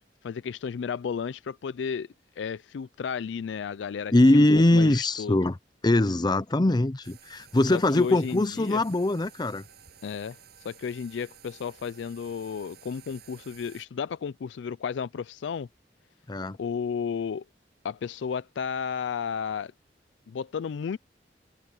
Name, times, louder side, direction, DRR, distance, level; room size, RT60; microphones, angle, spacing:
voice 1, 0.2-2.1 2.4-4.5 4.7-5.4 7.7-8.8 10.0-10.4 10.6-15.7 16.6-17.4 17.8-19.7 20.3-21.0, left 6 dB, 85° left, 0.4 m, -33 dB
voice 2, 4.1-5.6 5.8-9.6 16.3-16.6, left 1 dB, 25° left, 0.6 m, -22 dB
Bathtub (filling or washing), 7.0-13.9, right 8 dB, 65° right, 7.8 m, -53 dB
head